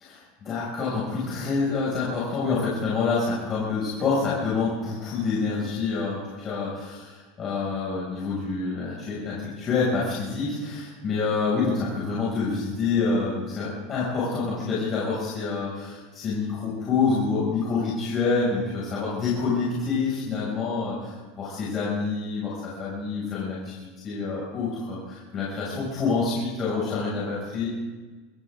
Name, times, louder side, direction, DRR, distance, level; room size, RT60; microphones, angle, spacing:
voice 1, 0.1-6.9 7.4-27.7, left 4 dB, 30° left, -7 dB, 6.6 m, -27 dB
25.0 x 14.0 x 3.9 m, 1.3 s
supercardioid pair, 140°, 0 cm